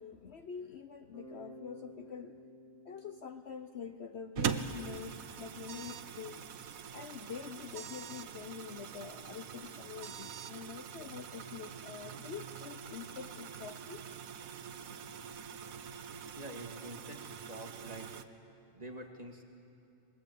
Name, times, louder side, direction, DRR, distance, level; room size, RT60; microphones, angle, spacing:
voice 1, 0.0-2.4 2.8-6.4 6.9-14.0, left 6 dB, 55° left, 7 dB, 0.9 m, -46 dB
Bass guitar, 1.1-5.1, equal, 80° left, 6.7 m, -54 dB
sound 1, 4.4-18.2, right 7 dB, 70° right, 1.3 m, -43 dB
sound 2, 5.7-6.1 7.7-8.3 10.0-10.5, right 8 dB, 55° right, 0.9 m, -48 dB
voice 2, 16.3-18.3 18.7-19.4, right 1 dB, 25° right, 2 dB, 2.1 m, -47 dB
28.5 x 21.5 x 8.4 m, 2.6 s
omnidirectional pair, 1.5 m